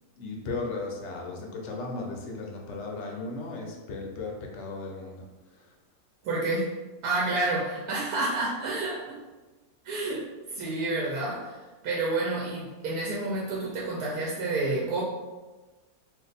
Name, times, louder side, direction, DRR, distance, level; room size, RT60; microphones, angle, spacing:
voice 1, 0.2-5.8, left 3 dB, 65° left, 0 dB, 0.8 m, -36 dB
voice 2, 6.2-6.7 7.0-9.2 9.8-10.2 10.5-15.0, right 2 dB, 85° right, -4 dB, 1.1 m, -29 dB
2.6 x 2.4 x 3.9 m, 1.2 s
omnidirectional pair, 1.6 m